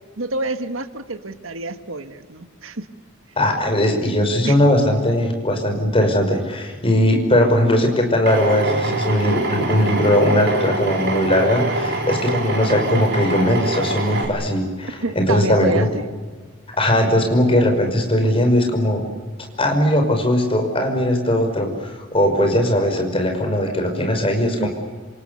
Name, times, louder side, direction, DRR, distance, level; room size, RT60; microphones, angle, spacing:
voice 1, 0.2-2.8 4.4-4.6 15.0-16.1 24.5-24.7, right 2 dB, 80° right, 9 dB, 1.6 m, -27 dB
voice 2, 3.4-15.9 16.7-19.0 19.6-24.7, left 1 dB, 25° left, 4 dB, 5.6 m, -19 dB
Drill, 8.3-14.3, right 2 dB, 55° right, 5.6 m, -24 dB
27.5 x 27.0 x 7.0 m, 1.4 s
head